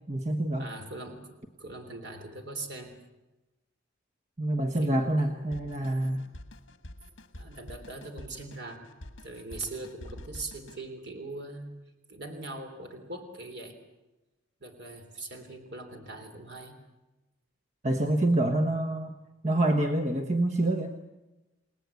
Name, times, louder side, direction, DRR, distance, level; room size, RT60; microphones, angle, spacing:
voice 1, 0.1-0.7 4.4-6.2 17.8-19.1 19.4-20.9, right 1 dB, 35° right, 5 dB, 1.2 m, -26 dB
voice 2, 0.6-3.0 4.8-5.5 7.3-8.9 9.2-11.8 12.1-13.8 14.6-16.8, right 2 dB, 55° right, 5 dB, 3.4 m, -41 dB
Drum kit, 5.5-10.8, left 1 dB, 65° left, 1.6 m, -47 dB
29.0 x 19.0 x 8.3 m, 1.1 s
head